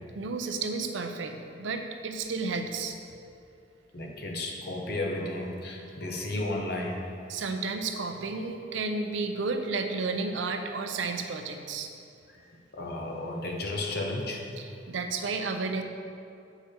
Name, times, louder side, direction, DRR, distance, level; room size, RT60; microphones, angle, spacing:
voice 1, 0.1-2.9 7.3-11.9 14.6-15.8, right 4 dB, 80° right, 6 dB, 0.5 m, -32 dB
voice 2, 3.9-7.0 12.7-14.4, left 2 dB, 55° left, 0 dB, 0.9 m, -33 dB
6.9 x 4.9 x 4.3 m, 2.6 s
head